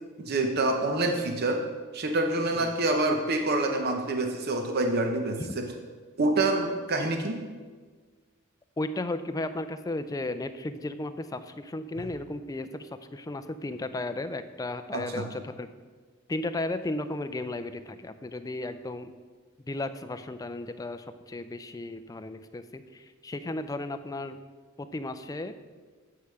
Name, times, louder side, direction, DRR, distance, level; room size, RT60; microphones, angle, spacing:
voice 1, 0.2-1.6 1.9-5.6 6.2-7.4 12.0-12.1 14.9-15.2, right 2 dB, 50° right, 3 dB, 0.7 m, -27 dB
voice 2, 8.8-15.7 16.3-19.1 19.7-24.4 24.8-25.5, left 2 dB, 15° left, 10 dB, 0.4 m, -34 dB
8.5 x 4.7 x 5.6 m, 1.5 s
head